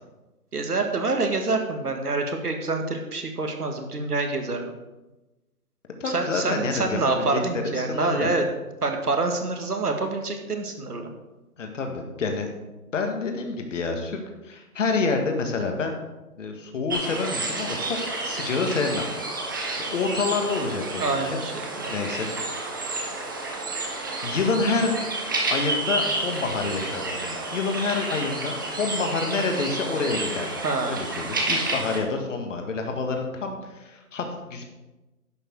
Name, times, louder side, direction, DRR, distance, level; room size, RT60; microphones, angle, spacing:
voice 1, 0.5-4.7 6.0-8.4 8.8-11.1 21.0-21.9 30.6-31.0, right 3 dB, 90° right, 4 dB, 1.9 m, -26 dB
voice 2, 6.0-8.3 11.6-12.5 12.9-16.0 16.4-19.1 19.9-21.4 21.9-22.3 24.2-25.0 25.5-34.6, left 4 dB, 55° left, 4 dB, 1.8 m, -28 dB
sound 1, 16.9-32.0, right 2 dB, 15° right, 0.6 m, -30 dB
10.5 x 6.9 x 4.7 m, 1.1 s
figure-of-eight pair, 145°, 45 cm